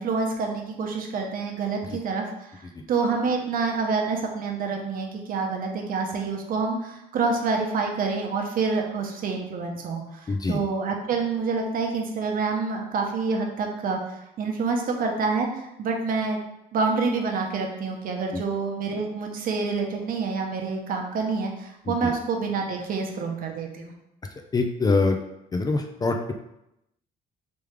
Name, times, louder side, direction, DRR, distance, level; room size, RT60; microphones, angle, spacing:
voice 1, 0.0-2.2 2.5-2.6 2.9-14.0 14.4-15.5 15.8-16.4 16.7-23.9, right 4 dB, 55° right, 2 dB, 0.8 m, -27 dB
voice 2, 10.3-10.6 18.3-18.4 21.8-22.1 24.5-25.2 25.5-26.3, left 3 dB, 20° left, 4 dB, 0.4 m, -24 dB
3.4 x 3.2 x 3.4 m, 0.84 s
cardioid pair, 110°, 17 cm